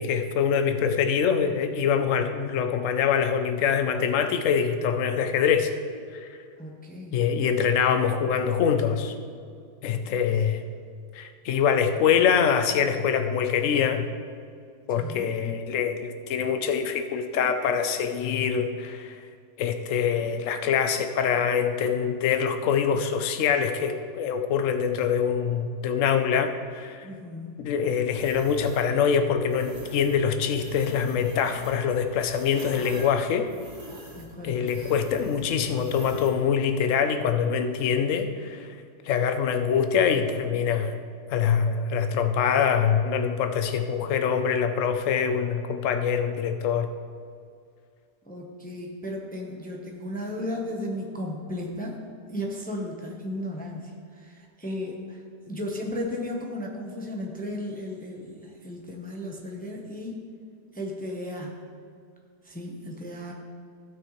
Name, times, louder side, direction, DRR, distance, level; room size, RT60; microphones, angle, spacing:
voice 1, 0.0-5.7 6.1-6.3 7.1-9.1 9.8-10.6 11.1-14.1 14.9-19.2 19.6-27.1 27.6-33.5 34.4-38.7 39.1-40.9 41.3-46.9, left 7 dB, 60° left, 7 dB, 0.9 m, -24 dB
voice 2, 6.6-7.2 15.0-15.3 27.0-27.6 34.1-34.8 48.3-52.0 52.3-55.2 55.5-60.2 60.7-61.6 62.4-63.3, left 1 dB, 5° left, 0 dB, 0.7 m, -35 dB
sound 1, 28.2-28.9 29.5-30.2 30.5-36.4, equal, 40° right, 1.8 m, -45 dB
16.5 x 6.2 x 3.2 m, 2.3 s
omnidirectional pair, 1.8 m